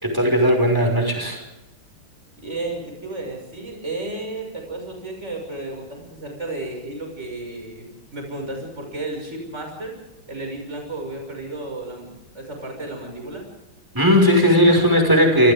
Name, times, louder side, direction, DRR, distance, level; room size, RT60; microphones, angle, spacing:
voice 1, 0.0-1.4 13.9-15.5, equal, 10° right, 3 dB, 5.9 m, -17 dB
voice 2, 2.4-10.0 10.3-13.4, right 2 dB, 30° right, 2 dB, 6.9 m, -33 dB
28.0 x 27.5 x 3.7 m, 0.94 s
omnidirectional pair, 2.3 m